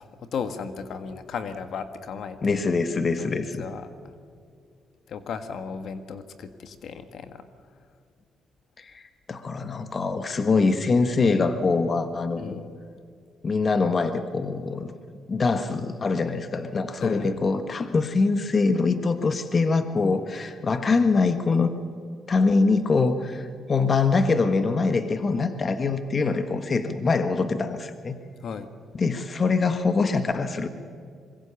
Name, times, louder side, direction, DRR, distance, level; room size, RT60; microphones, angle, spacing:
voice 1, 0.0-2.6 3.2-3.9 5.1-7.4 12.4-12.7 17.0-17.5 28.4-28.7, left 6 dB, 65° left, 9 dB, 1.6 m, -35 dB
voice 2, 2.4-3.6 8.8-9.0 9.3-12.6 13.4-14.9 15.3-21.7 22.3-28.2 28.9-30.7, left 4 dB, 40° left, 9 dB, 1.4 m, -24 dB
25.0 x 22.5 x 7.1 m, 2.3 s
cardioid pair, 90°, 0 cm